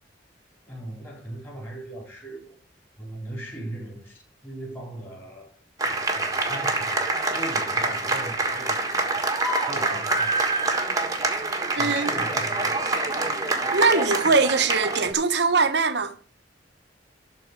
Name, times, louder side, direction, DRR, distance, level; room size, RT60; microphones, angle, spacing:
voice 1, 0.7-2.5 3.0-5.5 6.1-9.4 9.7-10.5 11.7-12.8, right 1 dB, 10° left, 4.4 m, -39 dB
sound 1, 5.8-15.1, right 2 dB, 20° right, 1.5 m, -26 dB
voice 2, 11.7-12.1 13.7-16.2, right 4 dB, 65° right, 1.0 m, -21 dB
12.0 x 4.4 x 6.8 m
head